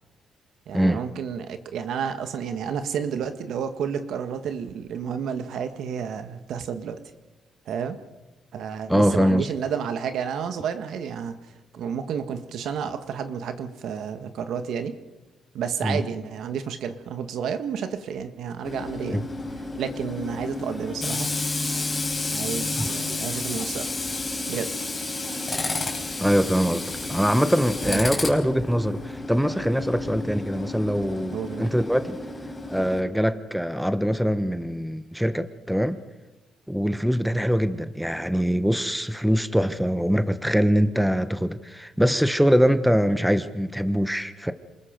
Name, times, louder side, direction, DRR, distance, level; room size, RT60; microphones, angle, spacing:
voice 1, 0.7-7.0 7.7-8.0 8.5-11.4 11.7-14.9 15.5-19.3 19.8-21.3 22.3-24.0 24.5-24.7 27.9-28.1 31.3-31.7, right 7 dB, 75° right, 9 dB, 1.6 m, -31 dB
voice 2, 8.9-9.5 15.8-16.0 19.1-19.2 26.2-32.2 32.7-36.0 36.7-44.5, equal, ahead, 11 dB, 1.1 m, -23 dB
Tools, 18.6-33.0, left 2 dB, 25° left, 4.5 m, -31 dB
27.5 x 20.5 x 5.2 m, 1.1 s
cardioid pair, 90°, 0 cm